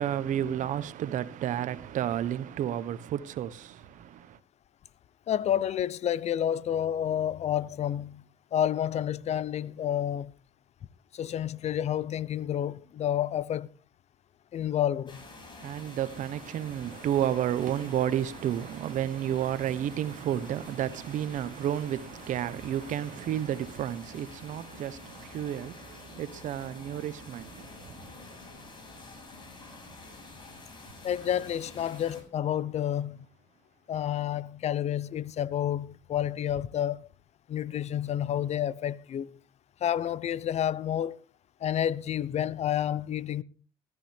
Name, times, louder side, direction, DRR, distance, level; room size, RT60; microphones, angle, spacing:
voice 1, 0.0-4.4 15.6-28.0, right 10 dB, 65° right, 1.2 m, -31 dB
voice 2, 5.3-8.2 8.5-10.3 11.1-13.7 14.5-15.2 31.0-33.3 33.9-37.1 37.5-39.4 39.8-41.2 41.6-43.4, left 10 dB, 50° left, 0.8 m, -29 dB
sound 1, 15.1-32.2, left 2 dB, 35° left, 7.1 m, -48 dB
14.5 x 14.0 x 3.6 m
cardioid pair, 90°, 14 cm